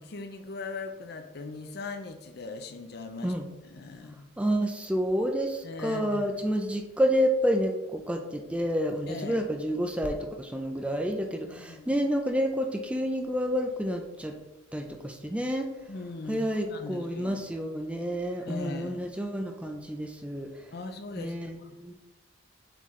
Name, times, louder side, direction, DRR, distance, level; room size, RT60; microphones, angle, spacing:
voice 1, 0.0-3.3 3.6-4.3 5.6-6.4 9.1-9.4 11.5-12.0 15.9-17.4 18.4-19.0 20.7-21.9, left 3 dB, 55° left, 7 dB, 0.6 m, -40 dB
voice 2, 4.4-14.3 14.7-15.7 16.3-20.5 21.2-21.9, equal, 5° right, 3 dB, 0.5 m, -29 dB
7.8 x 3.9 x 3.1 m, 1.0 s
head